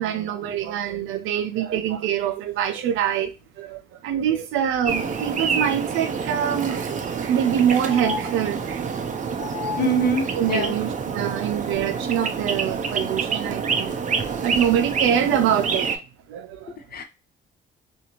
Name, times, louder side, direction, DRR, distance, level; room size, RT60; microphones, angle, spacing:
voice 1, 0.0-3.3 3.6-8.9 9.8-9.9 10.4-13.9 14.4-15.9 16.3-16.7, right 9 dB, 90° right, 0.5 m, -25 dB
sound 1, 4.8-16.0, right 5 dB, 40° right, 0.5 m, -27 dB
sound 2, 5.3-5.4 5.7-5.8 6.3-7.2 7.9-8.9 9.4-10.3 11.6-11.7, left 8 dB, 90° left, 0.8 m, -36 dB
voice 2, 9.8-10.7 16.9-17.0, right 2 dB, 50° left, 0.6 m, -23 dB
2.7 x 2.4 x 2.9 m
cardioid pair, 90°, 20 cm